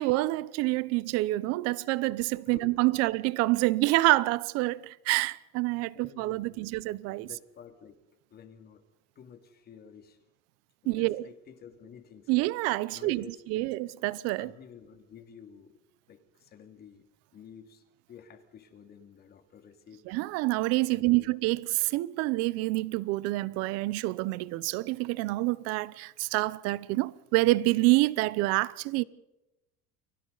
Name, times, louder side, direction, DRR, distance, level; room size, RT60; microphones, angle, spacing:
voice 1, 0.0-7.3 10.9-11.2 12.3-14.5 20.1-29.0, right 20 dB, 50° right, 0.8 m, -27 dB
voice 2, 2.5-3.0 5.9-6.7 7.2-8.0 8.3-8.8 9.2-10.2 10.8-12.5 12.9-13.7 14.4-15.8 16.1-17.1 17.3-20.1 20.9-21.3, left 7 dB, 30° left, 2.4 m, -51 dB
30.0 x 23.5 x 4.0 m
cardioid pair, 165°, 32 cm